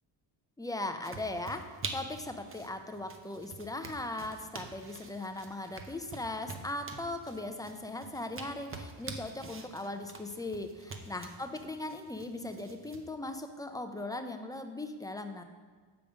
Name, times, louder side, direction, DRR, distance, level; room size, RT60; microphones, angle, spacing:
voice 1, 0.6-15.4, left 2 dB, 10° left, 7 dB, 0.4 m, -39 dB
sound 1, 1.0-13.0, right 3 dB, 25° right, 0.7 m, -46 dB
7.1 x 5.0 x 5.0 m, 1.5 s
cardioid pair, 100°, 47 cm